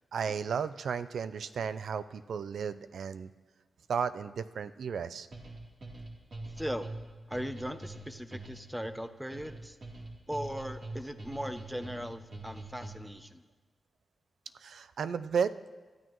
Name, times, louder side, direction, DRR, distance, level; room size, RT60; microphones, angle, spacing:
voice 1, 0.1-3.3 3.9-5.3 14.6-15.7, right 6 dB, 85° right, 13 dB, 0.5 m, -34 dB
sound 1, 5.3-13.2, right 2 dB, 50° right, 3.2 m, -44 dB
voice 2, 6.6-6.9 7.3-9.8 10.3-13.4, equal, 5° right, 9 dB, 0.7 m, -38 dB
27.0 x 13.0 x 3.1 m, 1.4 s
wide cardioid pair, 135°, 0 cm